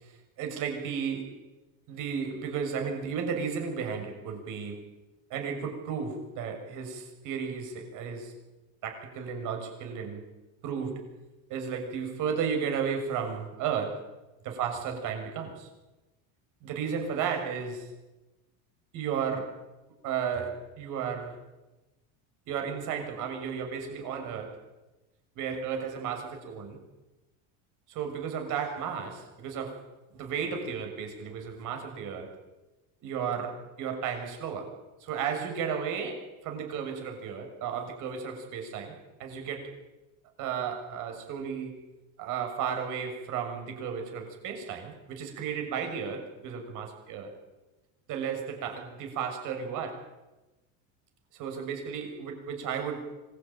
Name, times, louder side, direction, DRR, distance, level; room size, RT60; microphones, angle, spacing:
voice 1, 0.0-1.3 1.9-4.8 5.3-8.3 8.8-10.3 10.6-11.1 11.5-14.0 14.4-15.7 16.6-17.9 18.9-19.6 20.0-21.4 22.5-24.6 25.3-26.8 27.9-29.8 30.1-32.3 33.0-34.7 35.0-39.7 40.4-41.8 42.2-47.3 48.1-50.0 51.3-53.1, right 7 dB, 55° right, 4 dB, 6.6 m, -34 dB
25.5 x 21.0 x 9.1 m, 1.1 s
cardioid pair, 145°, 37 cm